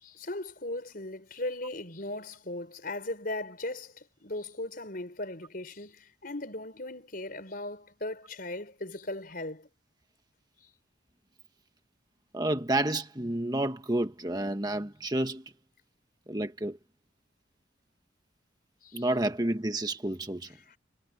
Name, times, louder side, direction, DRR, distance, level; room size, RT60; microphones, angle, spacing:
voice 1, 0.0-9.7 18.8-19.1 20.5-20.8, left 2 dB, 50° left, 5.1 m, -38 dB
voice 2, 12.3-15.4 16.3-16.8 18.9-20.5, right 1 dB, 20° right, 1.4 m, -30 dB
head